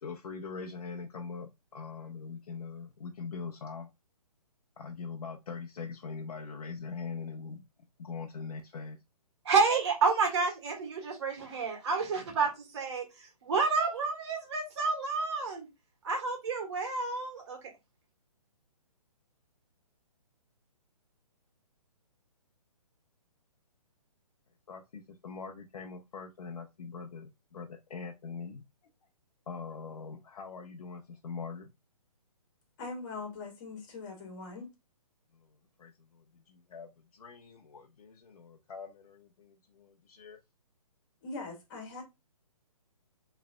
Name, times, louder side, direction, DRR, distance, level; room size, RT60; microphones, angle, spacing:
voice 1, 0.0-3.9 4.8-7.6 8.0-9.0 24.7-28.6 29.5-31.7 35.3-35.5 35.8-40.4, left 5 dB, 70° left, 0.8 m, -42 dB
voice 2, 9.4-15.7 16.0-17.7, right 4 dB, 45° right, 1.8 m, -30 dB
voice 3, 32.8-34.7 41.2-42.0, left 3 dB, 30° left, 2.0 m, -41 dB
4.6 x 3.4 x 2.2 m
hypercardioid pair, 155°, 19 cm